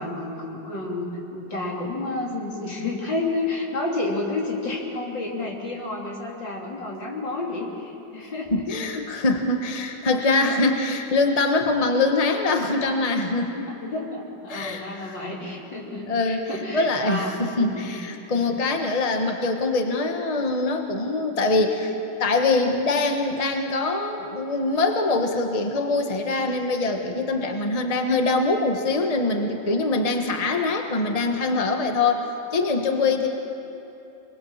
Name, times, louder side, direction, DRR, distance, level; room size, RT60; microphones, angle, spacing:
voice 1, 0.0-8.6 13.7-17.3 17.6-17.9 18.3-18.4, left 2 dB, 80° left, -2 dB, 4.1 m, -30 dB
voice 2, 8.5-13.7 14.5-15.1 16.1-32.3 32.5-33.3, left 3 dB, 20° left, 4 dB, 1.4 m, -23 dB
26.5 x 21.5 x 7.4 m, 2.9 s
omnidirectional pair, 2.0 m